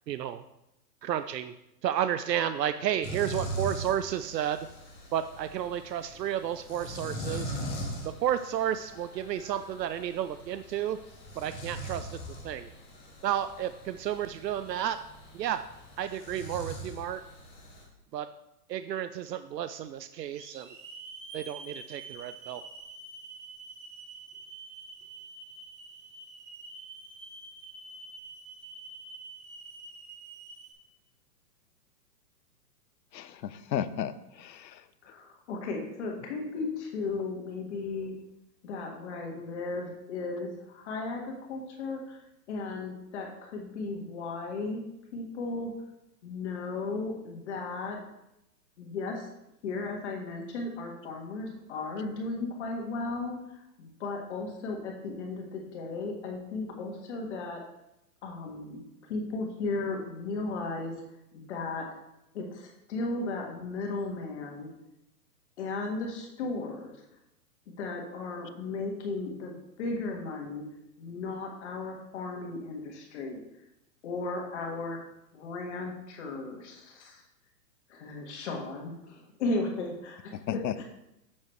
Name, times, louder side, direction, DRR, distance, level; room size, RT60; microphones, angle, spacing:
voice 1, 0.1-0.4 1.0-1.5 1.8-4.7 5.1-7.5 8.0-11.0 11.3-12.2 12.4-12.7 13.2-15.0 15.3-15.6 16.0-17.2 18.1-18.3 18.7-20.8 21.3-22.6, right 10 dB, 75° right, 11 dB, 0.6 m, -32 dB
sound 1, 3.0-17.8, right 1 dB, 10° left, 0.8 m, -41 dB
Hiss / Alarm, 19.3-19.4 20.3-30.7, right 3 dB, 50° right, 3.0 m, -47 dB
voice 2, 33.1-34.1 34.4-34.8 80.5-80.8, left 9 dB, 85° left, 13 dB, 0.8 m, -33 dB
voice 3, 35.0-38.1 38.6-42.2 42.5-44.8 45.1-45.7 46.2-48.0 48.8-49.3 49.6-53.4 53.8-57.6 58.2-58.8 59.1-61.0 61.3-61.9 62.3-64.7 65.6-67.0 67.8-70.6 71.0-73.4 74.0-75.0 75.3-77.2 77.9-80.8, left 3 dB, 45° left, 1 dB, 1.7 m, -35 dB
9.3 x 7.3 x 3.2 m, 0.86 s
hypercardioid pair, 155°, 50 cm